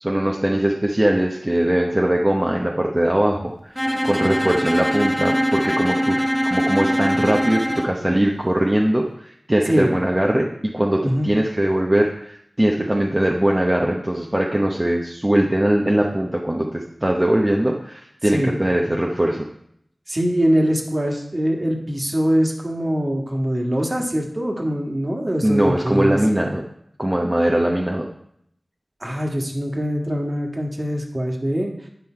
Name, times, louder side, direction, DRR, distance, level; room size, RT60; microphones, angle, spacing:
voice 1, 0.0-6.2 6.4-19.5 25.4-26.6 27.0-28.1, right 1 dB, 25° right, 0 dB, 0.9 m, -21 dB
Bowed string instrument, 3.8-8.0, equal, 5° left, 0.8 m, -22 dB
voice 2, 20.1-26.2 29.0-31.7, equal, 40° right, 1 dB, 1.7 m, -22 dB
9.6 x 5.4 x 4.5 m, 0.71 s
wide cardioid pair, 45°, 0 cm